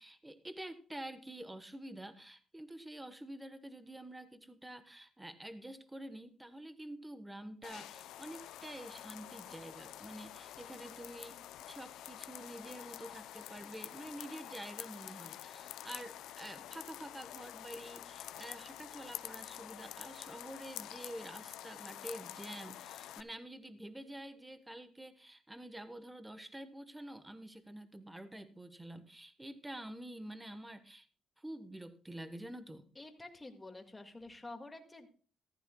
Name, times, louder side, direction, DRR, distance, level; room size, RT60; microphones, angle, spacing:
voice 1, 0.0-31.1 31.4-32.9, right 1 dB, 10° right, 10 dB, 1.2 m, -48 dB
sound 1, 7.6-23.2, left 12 dB, 85° left, 0.5 m, -48 dB
voice 2, 33.0-35.2, left 2 dB, 15° left, 5 dB, 2.0 m, -49 dB
15.0 x 14.0 x 2.3 m, 0.38 s
cardioid pair, 90°, 0 cm